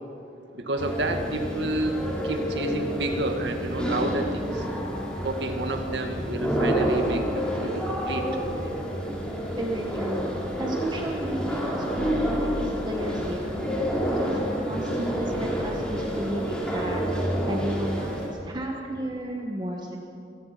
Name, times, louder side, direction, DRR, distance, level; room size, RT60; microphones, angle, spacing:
voice 1, 0.5-4.6 5.2-8.2 8.6-8.8, right 1 dB, 70° right, 5 dB, 1.9 m, -30 dB
sound 1, 0.8-18.3, equal, 5° left, 4.1 m, -29 dB
voice 2, 9.5-10.3 10.6-13.5 14.1-17.0 17.5-20.0, right 1 dB, 25° right, 1 dB, 1.4 m, -33 dB
26.5 x 18.0 x 5.9 m, 2.7 s
head